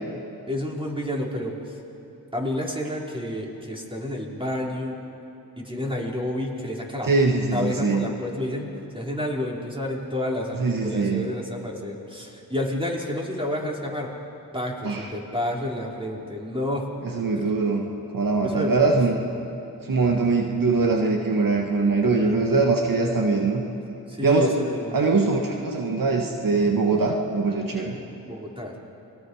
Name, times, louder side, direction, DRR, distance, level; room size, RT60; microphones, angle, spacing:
voice 1, 0.5-1.7 2.3-5.0 5.6-7.1 7.5-14.1 14.5-16.9 18.4-19.0 23.1-23.3 24.1-25.0 28.2-28.8, left 1 dB, 15° right, -3 dB, 5.0 m, -30 dB
voice 2, 7.0-8.1 10.6-11.3 14.8-15.1 17.0-19.2 19.9-23.6 24.2-24.5 24.9-28.0, right 3 dB, 65° right, 2 dB, 1.8 m, -22 dB
29.5 x 22.0 x 5.0 m, 2.9 s
cardioid pair, 55°, 36 cm